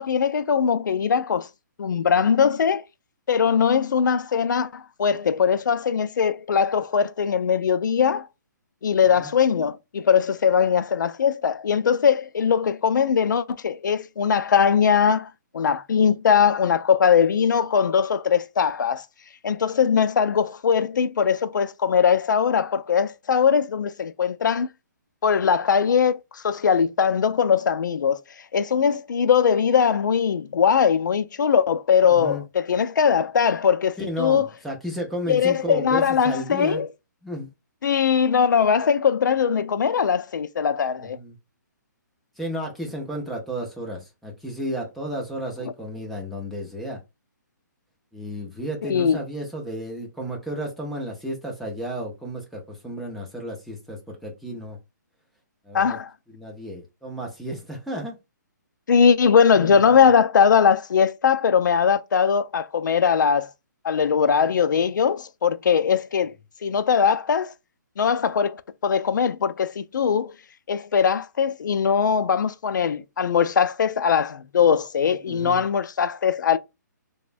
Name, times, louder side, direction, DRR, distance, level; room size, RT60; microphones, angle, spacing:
voice 1, 0.0-1.5 1.8-2.8 3.3-8.3 8.8-15.3 15.5-19.0 19.4-24.7 25.2-28.2 28.5-34.5 35.3-36.9 37.8-41.2 48.8-49.2 55.7-56.1 58.9-63.5 63.8-66.3 66.6-67.5 68.0-70.3 70.7-76.6, left 7 dB, 75° left, 0.4 m, -20 dB
voice 2, 32.1-32.4 34.0-36.8 37.2-37.5 41.0-41.4 42.4-47.0 48.1-54.8 55.6-56.0 56.3-58.2 59.5-59.9 75.3-75.6, equal, ahead, 0.6 m, -33 dB
3.1 x 2.1 x 2.5 m
hypercardioid pair, 150°, 10 cm